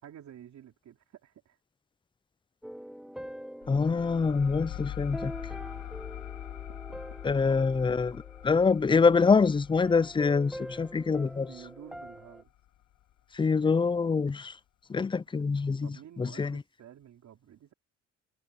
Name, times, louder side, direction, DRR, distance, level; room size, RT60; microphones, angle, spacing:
voice 1, 0.0-1.6 6.7-7.0 7.5-7.6 11.5-12.5 15.8-17.7, right 10 dB, 65° right, 4.4 m, -51 dB
sound 1, 2.6-9.3 9.8-12.4, equal, ahead, 1.0 m, -45 dB
sound 2, 3.6-12.8, left 13 dB, 75° left, 1.2 m, -43 dB
voice 2, 3.7-5.3 7.2-11.5 13.3-14.6 14.9-16.6, left 5 dB, 15° left, 0.4 m, -25 dB
cardioid pair, 90°, 30 cm